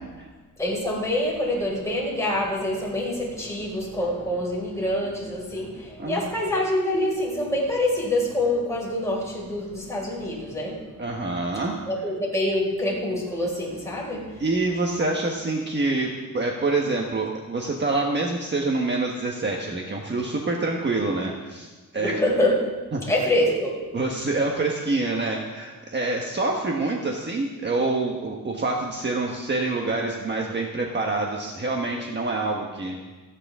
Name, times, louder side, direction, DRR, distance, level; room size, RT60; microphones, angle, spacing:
voice 1, 0.6-10.8 11.9-14.4 21.9-22.8 23.1-23.7, left 1 dB, 10° left, -5 dB, 5.6 m, -26 dB
voice 2, 11.0-11.8 14.4-22.2 22.9-23.0 23.9-33.0, right 3 dB, 30° right, 0 dB, 1.4 m, -26 dB
29.0 x 9.9 x 3.7 m, 1.3 s
wide cardioid pair, 150°, 34 cm